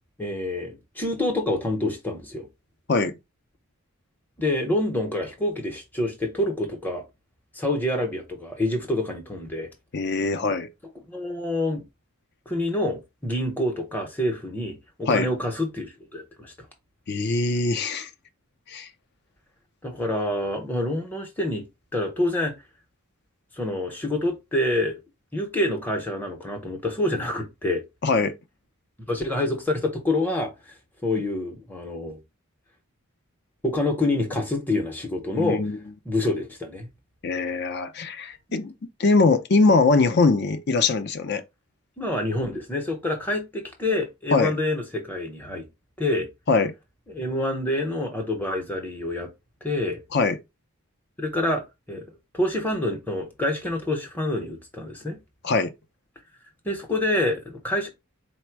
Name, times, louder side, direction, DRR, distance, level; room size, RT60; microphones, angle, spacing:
voice 1, 0.2-2.5 4.4-7.0 7.5-9.7 11.1-11.8 12.5-16.5 19.8-21.6 21.9-22.5 23.6-25.0 25.3-27.8 29.1-30.7 31.0-32.2 33.6-35.6 36.0-36.9 42.0-45.7 46.0-46.3 47.1-49.3 49.6-50.0 51.2-51.6 51.9-52.0 52.3-55.2 56.6-57.9, left 1 dB, 10° left, 0.7 m, -27 dB
voice 2, 9.9-10.7 15.1-15.3 17.1-18.1 18.7-18.9 28.0-28.3 35.4-35.8 37.2-38.7 39.0-41.4 44.3-44.6 46.5-46.7 50.1-50.4 55.4-55.7, left 3 dB, 50° left, 0.5 m, -22 dB
4.1 x 2.1 x 4.5 m
head